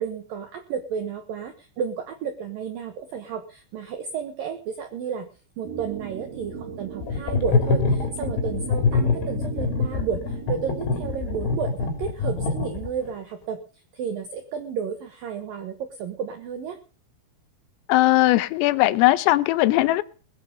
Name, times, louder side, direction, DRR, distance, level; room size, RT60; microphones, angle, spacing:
voice 1, 0.0-5.3 5.6-13.6 13.9-16.8, right 7 dB, 80° right, 7 dB, 2.0 m, -32 dB
sound 1, 5.6-11.6, right 6 dB, 55° right, 3.5 m, -37 dB
sound 2, 7.0-13.1, left 4 dB, 65° left, 4.6 m, -24 dB
voice 2, 17.9-20.0, left 17 dB, 85° left, 16 dB, 3.5 m, -19 dB
21.0 x 8.8 x 5.2 m, 0.40 s
omnidirectional pair, 5.9 m